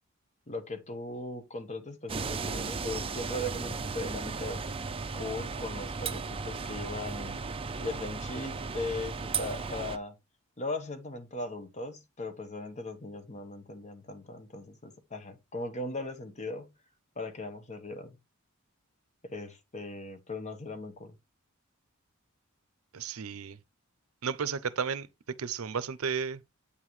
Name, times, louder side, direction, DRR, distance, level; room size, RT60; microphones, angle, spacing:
voice 1, 0.5-4.6 5.1-7.4 7.8-10.1 10.6-16.7 17.2-18.2 19.2-21.2, left 2 dB, 35° left, 1.1 m, -38 dB
sound 1, 2.1-10.0, right 4 dB, 25° right, 0.5 m, -35 dB
voice 2, 22.9-23.6 24.2-25.1 25.4-26.4, right 6 dB, 85° right, 0.6 m, -33 dB
8.3 x 5.7 x 3.1 m
head